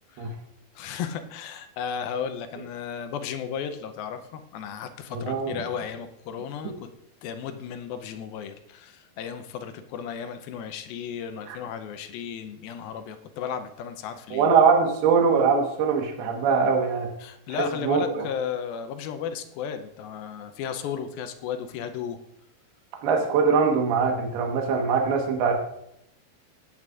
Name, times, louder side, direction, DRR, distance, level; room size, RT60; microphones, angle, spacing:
voice 1, 0.8-6.9 7.2-14.6 17.2-22.2, left 8 dB, 80° left, 9 dB, 2.4 m, -34 dB
voice 2, 5.1-5.6 11.5-11.6 14.3-17.1 17.8-18.3 23.0-25.5, right 5 dB, 80° right, 1 dB, 3.2 m, -22 dB
15.5 x 9.3 x 2.4 m, 0.79 s
omnidirectional pair, 4.5 m